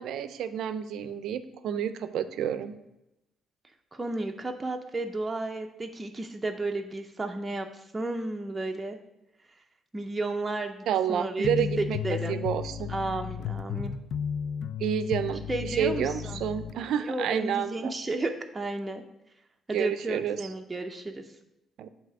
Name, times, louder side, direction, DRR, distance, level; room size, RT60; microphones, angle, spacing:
voice 1, 0.0-2.8 10.9-12.0 12.3-12.9 14.8-15.4 15.8-17.9 19.7-20.4 21.8-21.9, right 9 dB, 80° right, 12 dB, 0.4 m, -29 dB
voice 2, 3.9-9.0 9.9-12.4 12.9-13.9 15.5-16.4 17.0-19.0 19.7-21.2, right 2 dB, 20° right, 3 dB, 0.5 m, -33 dB
sound 1, 11.4-16.8, left 8 dB, 75° left, 0.3 m, -34 dB
8.0 x 2.8 x 5.9 m, 0.91 s
cardioid pair, 90°, 0 cm